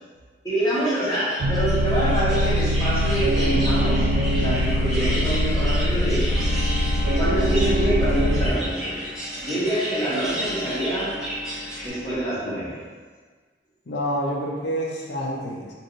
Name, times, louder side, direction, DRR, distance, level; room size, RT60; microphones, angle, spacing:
voice 1, 0.4-4.0 4.3-6.3 7.2-9.0 9.4-11.2 11.8-12.8, right 1 dB, 20° left, -10 dB, 1.2 m, -26 dB
sound 1, 0.7-11.9, equal, ahead, 1.2 m, -33 dB
sound 2, 1.4-8.5, equal, 90° right, 0.4 m, -22 dB
sound 3, 5.1-12.1, left 1 dB, 30° right, 0.8 m, -38 dB
voice 2, 13.9-15.7, equal, 75° left, -2 dB, 0.6 m, -28 dB
2.9 x 2.6 x 3.8 m, 1.5 s
head